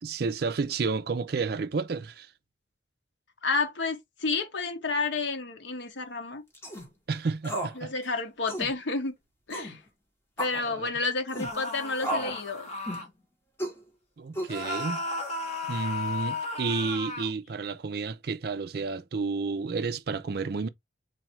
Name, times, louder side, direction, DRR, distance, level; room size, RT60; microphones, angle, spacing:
voice 1, 0.0-2.3 7.1-7.9 10.5-10.9 14.2-15.0 15.7-20.7, right 4 dB, 55° right, 0.4 m, -31 dB
voice 2, 3.4-6.4 7.8-9.1 9.5-9.8 10.4-12.7, left 3 dB, 75° left, 0.9 m, -30 dB
sound 1, 6.5-6.9 7.4-8.0 8.5-8.7 9.5-9.8 10.4-10.6 11.3-11.5 12.0-12.4 12.9-13.1 13.6-13.8 14.3-14.8, right 1 dB, 15° left, 1.3 m, -33 dB
sound 2, 11.3-13.1 14.5-17.3, left 2 dB, 35° left, 1.6 m, -34 dB
4.0 x 2.5 x 4.4 m
head